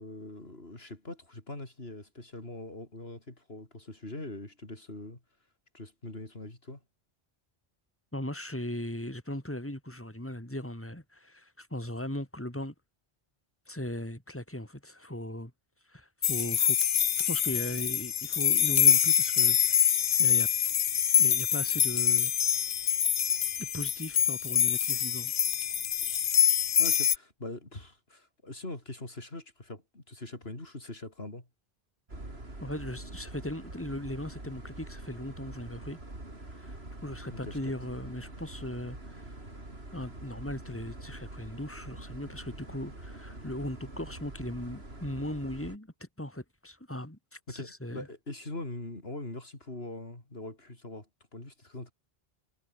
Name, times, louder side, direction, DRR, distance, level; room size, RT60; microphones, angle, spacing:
voice 1, 0.0-5.2 5.7-6.8 26.8-31.5 37.3-37.7 47.5-51.9, left 2 dB, 75° left, 5.0 m, -42 dB
voice 2, 8.1-12.7 13.7-15.5 15.9-16.8 17.2-19.9 20.2-20.5 21.2-22.3 23.6-25.3 32.6-36.0 36.6-39.4 39.9-48.1, left 1 dB, 10° left, 3.9 m, -38 dB
sound 1, 16.2-27.2, left 9 dB, 60° left, 0.8 m, -25 dB
sound 2, 32.1-45.8, right 2 dB, 80° right, 5.5 m, -45 dB
omnidirectional pair, 1.0 m